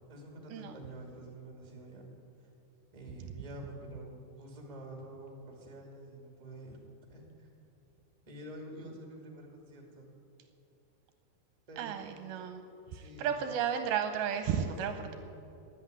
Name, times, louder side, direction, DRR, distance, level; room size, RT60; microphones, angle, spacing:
voice 1, 0.1-2.1 2.4-2.5 2.9-6.8 7.1-7.5 8.2-10.1 11.7-11.9 12.9-13.6 14.9-15.1, right 1 dB, 15° right, 1 dB, 1.7 m, -48 dB
voice 2, 11.8-12.6 12.9-15.2, right 8 dB, 80° right, 8 dB, 2.4 m, -33 dB
13.5 x 11.0 x 9.5 m, 2.8 s
omnidirectional pair, 4.6 m